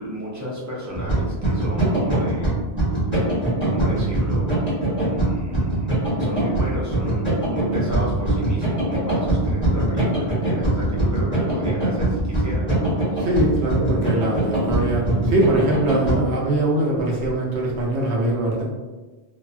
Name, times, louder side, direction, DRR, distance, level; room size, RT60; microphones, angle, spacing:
voice 1, 0.0-2.6 3.6-4.6 5.0-5.9 6.2-12.7, equal, 20° right, -6 dB, 0.5 m, -32 dB
sound 1, 0.9-16.2, right 2 dB, 10° left, 1.0 m, -22 dB
voice 2, 13.2-18.6, right 1 dB, 80° right, -3 dB, 1.0 m, -22 dB
2.7 x 2.3 x 2.4 m, 1.2 s
omnidirectional pair, 1.1 m